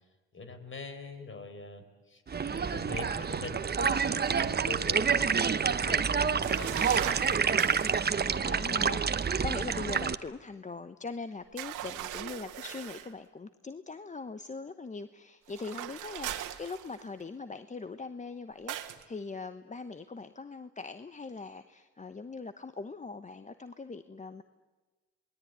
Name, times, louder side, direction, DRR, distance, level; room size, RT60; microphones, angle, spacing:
voice 1, 0.3-2.2 2.5-7.7, left 4 dB, 40° left, 8 dB, 4.8 m, -44 dB
sound 1, 2.3-10.1, right 6 dB, 35° right, 1.1 m, -28 dB
sound 2, 6.4-8.0 11.6-13.1 15.5-17.2 18.7-19.0, right 12 dB, 85° right, 1.7 m, -39 dB
voice 2, 8.1-24.4, left 4 dB, 25° left, 11 dB, 1.1 m, -41 dB
27.5 x 21.0 x 9.6 m, 1.2 s
cardioid pair, 90°, 30 cm